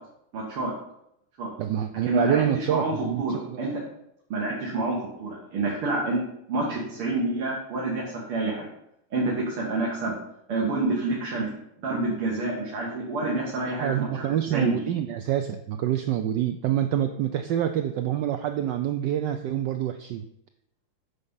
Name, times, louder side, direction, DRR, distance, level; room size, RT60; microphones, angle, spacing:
voice 1, 0.3-0.7 1.4-1.5 2.0-3.7 4.3-6.2 6.5-8.7 9.1-10.1 10.5-11.5 11.8-14.2 14.5-14.8, right 2 dB, 85° right, -3 dB, 2.9 m, -28 dB
voice 2, 1.6-3.7 13.8-20.2, right 11 dB, 70° right, 8 dB, 1.1 m, -27 dB
9.9 x 6.9 x 5.6 m, 0.77 s
omnidirectional pair, 2.4 m